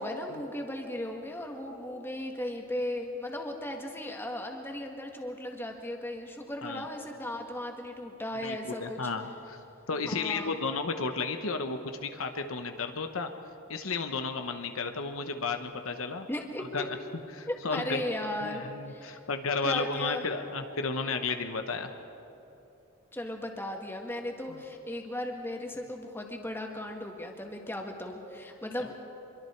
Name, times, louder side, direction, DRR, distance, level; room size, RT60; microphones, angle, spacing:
voice 1, 0.0-9.1 10.0-10.6 16.3-16.7 17.5-18.6 18.9-19.2 19.6-20.2 23.1-28.9, left 1 dB, 10° left, 2 dB, 1.9 m, -36 dB
voice 2, 8.4-9.6 9.9-13.3 13.7-16.3 16.7-17.0 17.3-18.0 18.4-21.9 24.5-24.6, left 4 dB, 70° left, 6 dB, 1.1 m, -33 dB
25.5 x 23.0 x 4.6 m, 2.9 s
head